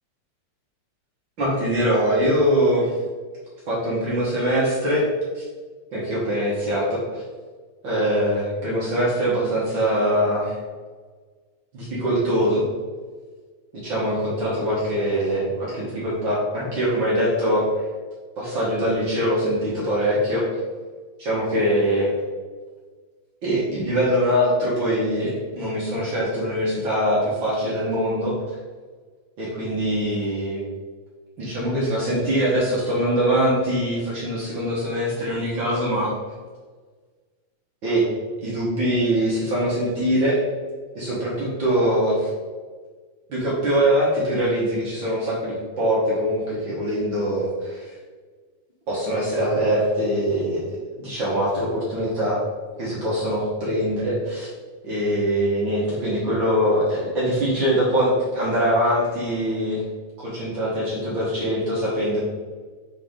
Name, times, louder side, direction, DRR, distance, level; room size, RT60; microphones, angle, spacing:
voice 1, 1.4-2.9 3.7-5.0 5.3-5.4 5.9-7.2 7.8-10.5 11.7-12.6 13.7-17.6 18.4-20.5 21.2-22.1 23.4-28.3 29.4-30.6 31.4-36.1 37.8-38.0 38.4-40.4 40.9-42.3 43.3-47.9 48.9-52.4 52.8-54.5 54.8-59.8 60.2-62.2, equal, 50° right, -7 dB, 1.6 m, -23 dB
6.4 x 4.6 x 3.6 m, 1.5 s
omnidirectional pair, 3.4 m